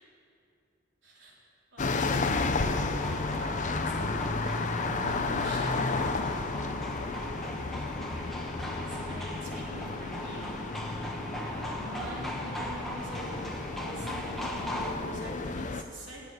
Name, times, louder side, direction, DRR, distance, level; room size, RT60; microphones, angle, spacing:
voice 1, 1.0-1.3 1.7-2.8 3.2-3.6 3.9-6.1 8.0-8.3 8.8-10.5 11.4-14.5 14.8-16.2, right 1 dB, 65° right, -5 dB, 4.1 m, -45 dB
sound 1, 1.8-15.8, left 3 dB, 40° left, 0.6 m, -32 dB
sound 2, 2.6-14.9, equal, ahead, 1.5 m, -39 dB
15.5 x 8.2 x 9.5 m, 2.5 s
head